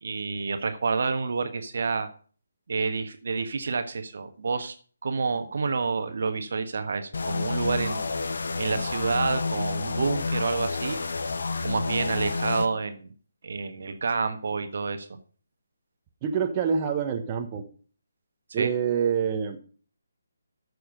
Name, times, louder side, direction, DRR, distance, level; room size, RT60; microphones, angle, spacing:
voice 1, 0.0-2.1 2.7-4.7 5.0-8.0 8.6-11.0 11.6-13.1 13.4-15.1 18.5-18.7, right 4 dB, 55° right, 8 dB, 1.3 m, -28 dB
sound 1, 7.1-12.7, left 3 dB, 60° left, 1.1 m, -29 dB
voice 2, 16.2-17.6 18.5-19.6, right 7 dB, 25° right, 4 dB, 1.2 m, -26 dB
13.5 x 6.5 x 5.2 m, 0.41 s
figure-of-eight pair, 145°, 0 cm